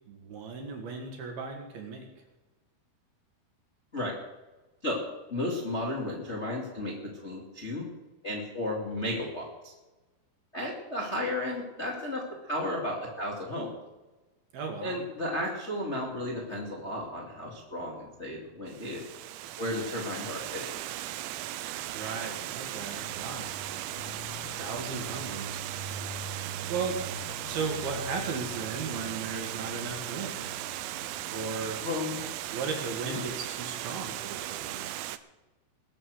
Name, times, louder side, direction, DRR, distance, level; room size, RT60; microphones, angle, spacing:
voice 1, 0.1-2.1 14.5-15.0 21.9-23.5 24.6-25.6 26.7-27.0 27.4-30.6 31.3-31.8 32.5-34.9, right 4 dB, 60° right, 3 dB, 3.2 m, -36 dB
voice 2, 5.3-7.9 8.2-9.7 10.5-13.7 14.8-19.1 19.6-20.6 31.8-32.4 33.0-33.2, left 1 dB, 30° left, -2 dB, 1.3 m, -34 dB
sound 1, 16.4-33.5, left 1 dB, 50° left, 1.6 m, -47 dB
Water, 18.7-35.2, right 15 dB, 85° right, 2.8 m, -37 dB
21.0 x 7.7 x 6.5 m, 1.1 s
omnidirectional pair, 5.6 m